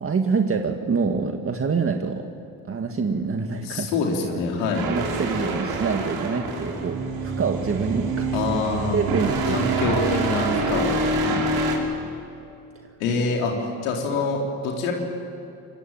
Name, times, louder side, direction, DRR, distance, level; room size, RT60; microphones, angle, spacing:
voice 1, 0.0-2.2 2.7-3.9 4.9-8.3 8.9-10.0 11.2-11.5, right 5 dB, 35° right, 4 dB, 1.9 m, -26 dB
voice 2, 3.6-4.9 8.3-9.0 9.4-10.9 13.0-13.5 13.8-14.9, left 4 dB, 85° left, 0 dB, 4.0 m, -25 dB
sound 1, 4.7-11.8, right 3 dB, 65° right, 6.0 m, -26 dB
25.5 x 21.5 x 9.3 m, 2.6 s
supercardioid pair, 70°, 39 cm